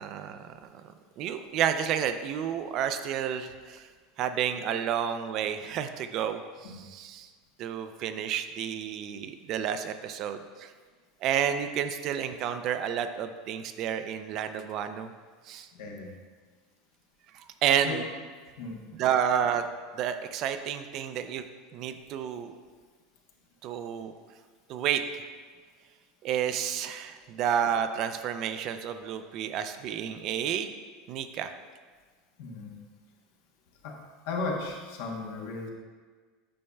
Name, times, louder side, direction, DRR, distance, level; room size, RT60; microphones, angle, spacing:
voice 1, 0.0-3.9 4.2-7.3 7.6-10.7 11.2-15.1 15.5-15.7 17.3-18.1 19.0-19.7 20.0-21.4 21.7-22.5 23.6-24.1 24.7-25.2 26.2-30.7 31.1-31.5, right 9 dB, 45° right, 9 dB, 0.4 m, -30 dB
voice 2, 32.4-32.7 33.8-34.0 34.3-35.7, left 3 dB, 75° left, 0 dB, 1.0 m, -35 dB
8.5 x 5.2 x 2.3 m, 1.5 s
supercardioid pair, 140°, 0 cm